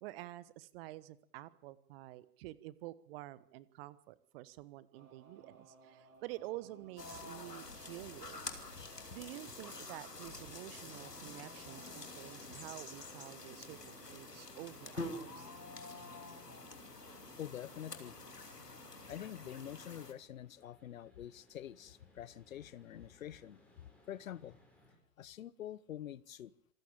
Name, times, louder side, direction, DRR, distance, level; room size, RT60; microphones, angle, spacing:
voice 1, 0.0-8.6 9.1-15.5, right 17 dB, 40° right, 1.4 m, -49 dB
sound 1, 4.9-20.2, right 4 dB, 60° right, 4.9 m, -62 dB
sound 2, 7.0-20.1, left 2 dB, 85° left, 3.1 m, -48 dB
sound 3, 11.6-25.0, left 1 dB, 5° left, 6.6 m, -70 dB
voice 2, 17.4-18.2 19.1-23.6 24.1-24.6 25.2-26.5, left 11 dB, 60° left, 1.1 m, -46 dB
26.5 x 15.0 x 8.9 m
figure-of-eight pair, 105°, 47 cm